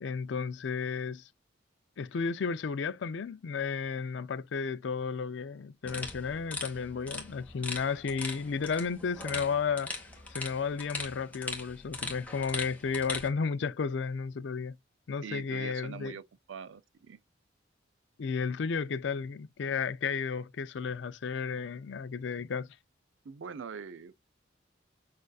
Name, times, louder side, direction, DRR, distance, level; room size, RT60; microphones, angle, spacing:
voice 1, 0.0-1.3 2.0-9.9 10.3-14.8 15.1-16.1 18.2-22.7, left 5 dB, 70° left, 0.4 m, -33 dB
sound 1, 5.8-13.3, left 2 dB, 10° left, 1.0 m, -40 dB
voice 2, 15.2-16.2 16.5-17.2 23.2-24.2, right 6 dB, 80° right, 0.5 m, -43 dB
6.5 x 2.4 x 2.3 m
head